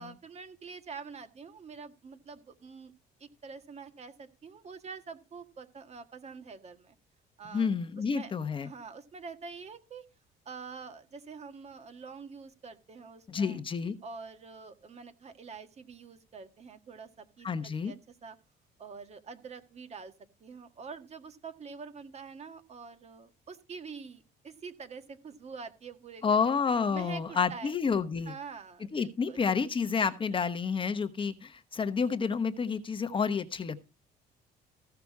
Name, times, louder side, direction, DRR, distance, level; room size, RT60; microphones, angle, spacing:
voice 1, 0.0-2.9 3.2-7.0 7.4-8.3 8.6-10.1 10.5-13.6 14.0-18.4 18.8-20.1 20.4-26.4 26.9-27.7 28.3-29.4, right 5 dB, 40° right, 8 dB, 1.7 m, -46 dB
voice 2, 7.5-8.7 13.3-13.9 17.4-17.9 26.2-28.3 28.9-33.8, left 5 dB, 30° left, 10 dB, 1.0 m, -29 dB
15.0 x 5.9 x 4.7 m, 0.31 s
cardioid pair, 110°, 17 cm